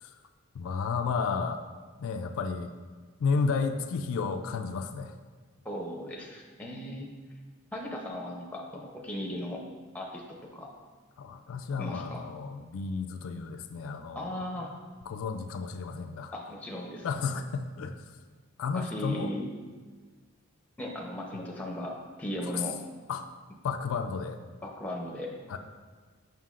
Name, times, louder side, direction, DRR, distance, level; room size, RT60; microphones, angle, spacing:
voice 1, 0.5-1.6 2.0-2.7 3.2-5.1 11.2-14.4 15.1-16.3 17.0-18.0 18.6-19.3 22.5-22.6 23.1-23.3 23.6-24.4 25.5-25.6, left 5 dB, 70° left, 6 dB, 0.3 m, -32 dB
voice 2, 5.6-7.1 7.7-9.6 9.9-10.7 11.8-12.2 14.1-14.7 16.3-17.1 18.7-19.5 20.8-22.8 24.6-25.3, left 1 dB, 5° left, -1 dB, 0.6 m, -37 dB
7.3 x 5.8 x 2.4 m, 1.5 s
head